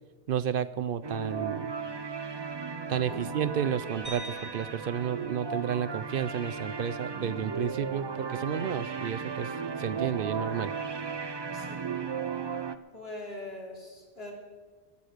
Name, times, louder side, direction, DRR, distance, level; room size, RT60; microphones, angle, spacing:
voice 1, 0.3-1.7 2.9-10.7, right 8 dB, 65° right, 13 dB, 0.7 m, -31 dB
sound 1, 1.0-12.8, right 5 dB, 30° right, 0.5 m, -36 dB
sound 2, 4.0-6.4, left 1 dB, 15° left, 2.6 m, -48 dB
voice 2, 12.9-14.3, left 2 dB, 75° left, -2 dB, 3.6 m, -42 dB
21.5 x 8.5 x 6.5 m, 1.4 s
omnidirectional pair, 1.0 m